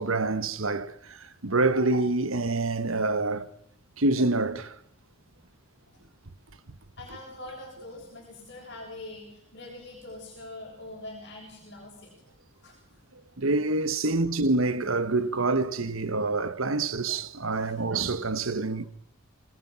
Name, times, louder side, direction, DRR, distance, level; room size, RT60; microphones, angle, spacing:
voice 1, 0.0-3.5 4.0-4.8 13.4-18.8, right 3 dB, 90° right, 1.4 m, -26 dB
voice 2, 7.0-12.1 12.6-13.0 14.0-14.4 17.5-17.8, left 2 dB, 55° left, 7.2 m, -44 dB
26.5 x 20.5 x 6.2 m
head